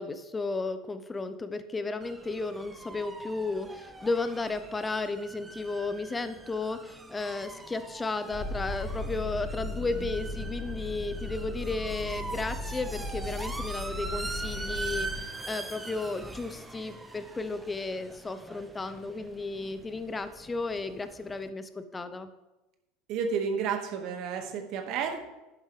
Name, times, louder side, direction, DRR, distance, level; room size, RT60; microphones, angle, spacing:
voice 1, 0.0-22.3, left 3 dB, 20° left, 11 dB, 1.0 m, -34 dB
sound 1, 2.0-21.5, right 2 dB, 15° right, 1.4 m, -42 dB
sound 2, 8.3-15.2, left 2 dB, 40° left, 3.9 m, -37 dB
voice 2, 23.1-25.3, right 6 dB, 55° right, 4 dB, 2.0 m, -31 dB
11.0 x 11.0 x 3.5 m, 1.0 s
hypercardioid pair, 75°, 0 cm